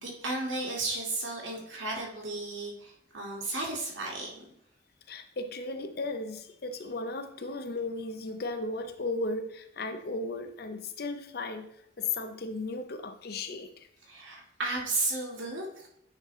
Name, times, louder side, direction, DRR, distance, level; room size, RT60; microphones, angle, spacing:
voice 1, 0.0-4.3 14.1-15.9, right 2 dB, 80° right, -2 dB, 1.8 m, -34 dB
voice 2, 5.1-11.7 12.0-13.9, left 3 dB, 55° left, 8 dB, 0.6 m, -35 dB
8.8 x 3.9 x 3.1 m, 0.72 s
head